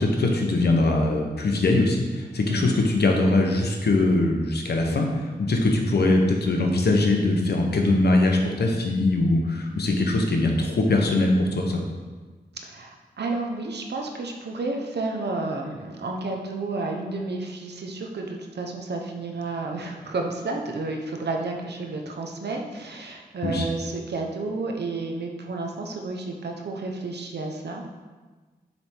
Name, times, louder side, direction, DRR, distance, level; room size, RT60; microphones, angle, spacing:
voice 1, 0.0-11.8 23.4-23.7, left 2 dB, 70° left, 1 dB, 0.9 m, -22 dB
voice 2, 12.6-28.0, right 3 dB, 80° right, 2 dB, 0.8 m, -31 dB
6.7 x 3.5 x 4.5 m, 1.4 s
cardioid pair, 60°, 17 cm